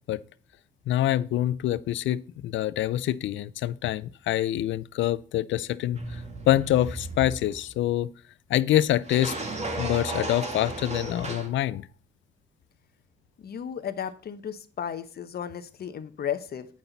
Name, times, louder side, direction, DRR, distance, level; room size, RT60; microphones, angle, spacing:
voice 1, 0.9-6.0 6.5-8.1 8.5-9.4 9.8-11.9, left 13 dB, 70° left, 0.5 m, -25 dB
sound 1, 5.9-7.7 9.0-11.5, right 2 dB, 35° right, 1.9 m, -34 dB
voice 2, 13.4-16.7, left 8 dB, 50° left, 0.9 m, -34 dB
8.8 x 5.8 x 4.0 m
cardioid pair, 90°, 20 cm